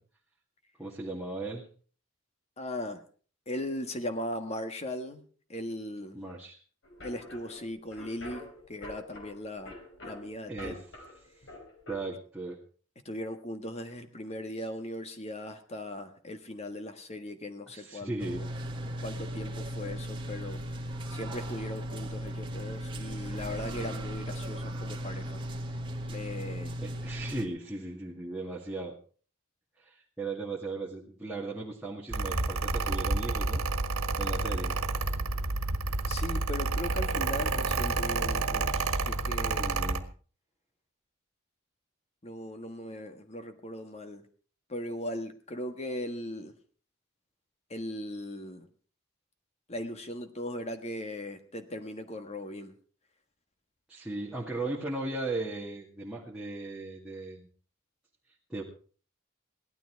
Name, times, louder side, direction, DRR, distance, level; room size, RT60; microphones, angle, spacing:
voice 1, 0.8-1.7 6.1-6.6 10.5-10.8 11.9-12.6 17.7-18.4 26.8-29.0 29.8-33.7 34.2-34.8 39.5-40.0 53.9-57.5 58.5-58.6, right 2 dB, 5° right, -6 dB, 2.2 m, -37 dB
voice 2, 2.6-3.0 3.5-5.2 5.5-6.2 7.0-9.7 10.0-10.7 13.0-18.5 19.0-20.6 21.1-25.4 26.1-26.8 36.1-39.8 42.2-44.3 44.7-46.5 47.7-48.7 49.7-52.7, left 1 dB, 30° left, 7 dB, 1.5 m, -38 dB
sound 1, 6.8-12.0, left 2 dB, 60° left, 4.6 m, -47 dB
sound 2, 18.2-27.5, equal, 25° right, 1.9 m, -37 dB
Mechanical fan, 32.1-40.0, right 3 dB, 90° right, 1.5 m, -29 dB
17.5 x 12.5 x 4.7 m, 0.42 s
head